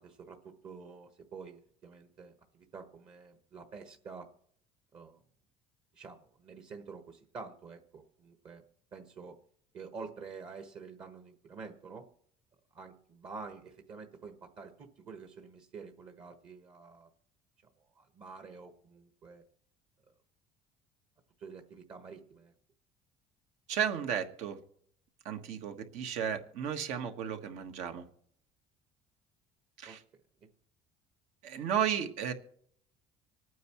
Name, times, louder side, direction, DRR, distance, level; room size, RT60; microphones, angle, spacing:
voice 1, 0.0-4.3 4.9-5.2 5.9-8.6 8.9-9.3 9.7-12.1 12.7-17.1 17.9-19.4 21.4-22.5 29.8-30.0 30.4-30.5, right 5 dB, 40° right, 4 dB, 1.4 m, -48 dB
voice 2, 23.7-24.6 25.2-28.0 29.8-30.0 31.4-32.3, right 8 dB, 70° right, 6 dB, 1.5 m, -34 dB
25.5 x 9.3 x 3.1 m, 0.65 s
cardioid pair, 135°, 12 cm